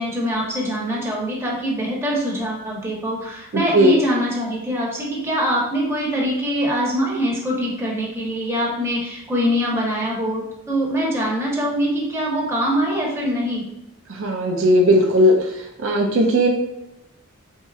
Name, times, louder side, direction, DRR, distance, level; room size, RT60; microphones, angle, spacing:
voice 1, 0.0-13.6, equal, 10° right, -4 dB, 1.0 m, -23 dB
voice 2, 3.5-3.9 14.1-15.3 15.8-16.5, equal, 65° right, 1 dB, 0.5 m, -17 dB
4.0 x 3.6 x 2.4 m, 0.86 s
head